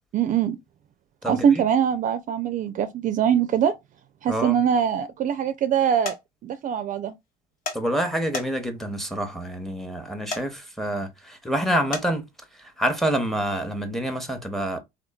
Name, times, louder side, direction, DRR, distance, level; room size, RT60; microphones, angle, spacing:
voice 1, 0.1-0.6 1.3-3.7 4.2-6.2 6.4-7.1, right 8 dB, 45° right, 0.4 m, -22 dB
voice 2, 1.2-1.6 4.3-4.6 7.7-12.2 12.6-14.8, right 1 dB, ahead, 0.7 m, -27 dB
sound 1, 6.0-6.2 7.7-7.8 8.3-8.8 10.3-10.4 11.9-12.1, left 3 dB, 50° left, 1.0 m, -30 dB
3.0 x 2.2 x 2.2 m
supercardioid pair, 80°, 19 cm